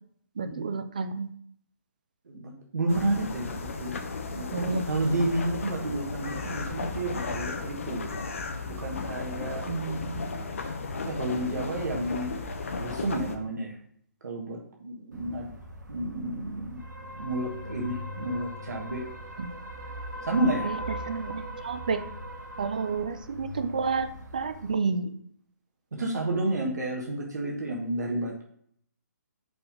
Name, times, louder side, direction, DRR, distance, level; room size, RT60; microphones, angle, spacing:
voice 1, 0.4-1.3 4.4-4.9 9.7-10.4 19.4-19.5 20.6-22.0 22.6-24.1 24.3-25.1, right 4 dB, 25° right, 10 dB, 0.3 m, -30 dB
voice 2, 2.3-4.0 4.3-8.1 8.6-9.7 11.0-12.3 12.8-13.8 14.2-15.5 15.9-16.8 17.1-19.0 20.2-20.7 25.9-28.4, right 1 dB, 70° right, -1 dB, 1.5 m, -31 dB
sound 1, 2.9-13.4, left 4 dB, 45° left, 0.8 m, -35 dB
sound 2, 15.1-24.7, equal, 85° right, 1.6 m, -40 dB
5.8 x 3.8 x 5.1 m, 0.63 s
hypercardioid pair, 180°, 10 cm